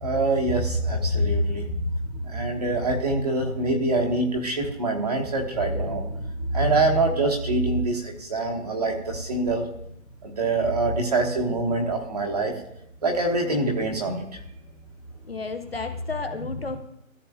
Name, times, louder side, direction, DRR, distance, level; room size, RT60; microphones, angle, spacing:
voice 1, 0.0-1.6 2.2-6.3 6.5-9.6 10.2-12.5 13.0-14.2 16.5-16.8, right 2 dB, 30° right, 1 dB, 1.2 m, -24 dB
voice 2, 15.3-16.8, left 4 dB, 45° left, 8 dB, 0.6 m, -33 dB
14.5 x 7.3 x 2.3 m, 0.78 s
hypercardioid pair, 180°, 42 cm